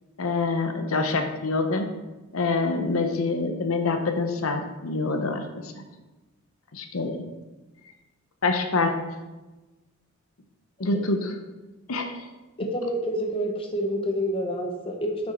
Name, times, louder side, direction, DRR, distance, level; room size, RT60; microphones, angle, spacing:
voice 1, 0.2-1.9 2.3-5.7 6.7-7.2 8.4-8.9 10.8-11.3 11.9-12.2, left 3 dB, 90° left, 6 dB, 0.8 m, -26 dB
voice 2, 12.6-15.3, equal, 25° left, 2 dB, 0.8 m, -28 dB
6.2 x 6.2 x 4.3 m, 1.1 s
head